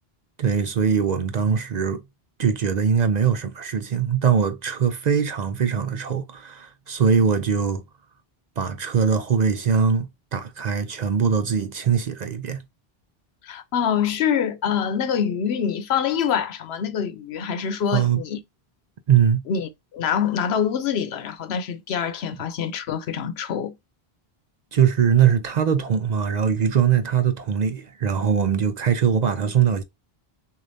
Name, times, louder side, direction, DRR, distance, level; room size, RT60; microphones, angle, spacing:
voice 1, 0.4-2.0 2.4-7.8 8.6-12.6 17.9-18.2 19.1-19.4 24.7-29.8, right 7 dB, 55° right, 0.5 m, -21 dB
voice 2, 13.4-18.4 19.5-23.8, left 8 dB, 90° left, 0.9 m, -25 dB
6.4 x 2.5 x 2.6 m
omnidirectional pair, 1.0 m